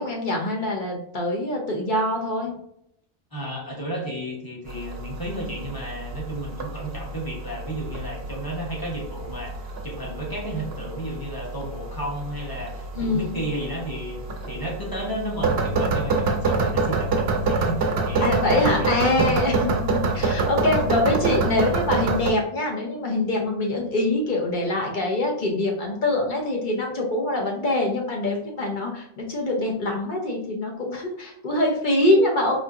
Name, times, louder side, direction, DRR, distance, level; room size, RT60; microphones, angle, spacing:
voice 1, 0.0-2.5 12.9-13.4 18.2-32.6, left 2 dB, 50° left, 0 dB, 0.9 m, -24 dB
voice 2, 3.3-9.5 9.8-14.2 14.5-18.9 19.2-19.3, right 1 dB, 20° left, -3 dB, 0.9 m, -32 dB
sound 1, 4.7-22.3, right 3 dB, 70° right, 0.9 m, -27 dB
4.2 x 2.8 x 2.5 m, 0.73 s
omnidirectional pair, 1.1 m